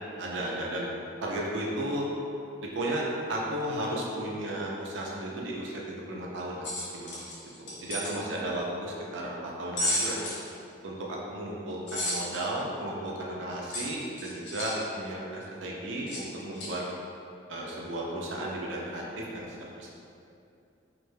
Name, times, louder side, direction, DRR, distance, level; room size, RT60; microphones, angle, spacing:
voice 1, 0.2-0.9 1.2-2.1 2.6-6.6 6.9-7.2 7.6-10.2 10.8-16.8 17.5-19.9, right 1 dB, 80° right, -3 dB, 0.5 m, -34 dB
sound 1, 6.6-8.1 9.8-10.4 11.9-12.4 13.7-14.8 16.1-16.2 16.5-16.7, left 1 dB, 70° left, 0.6 m, -32 dB
2.3 x 2.1 x 3.2 m, 2.6 s
head